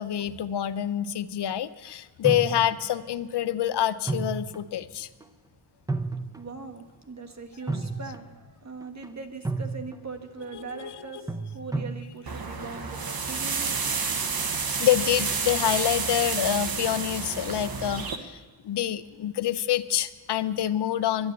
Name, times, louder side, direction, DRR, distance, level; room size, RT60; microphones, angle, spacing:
voice 1, 0.0-5.1 10.5-11.0 14.8-21.3, left 11 dB, 75° left, 14 dB, 0.7 m, -27 dB
sound 1, 2.2-3.1 4.1-4.8 5.2-5.3 5.9-6.6 7.7-8.5 8.8-9.1 9.4-10.1 11.3-12.0, right 3 dB, 10° right, 0.7 m, -32 dB
voice 2, 6.4-14.0, right 4 dB, 40° right, 6 dB, 1.5 m, -41 dB
sound 2, 12.3-18.2, right 5 dB, 60° right, 1.2 m, -30 dB
11.0 x 10.5 x 9.5 m, 1.3 s
wide cardioid pair, 90°, 41 cm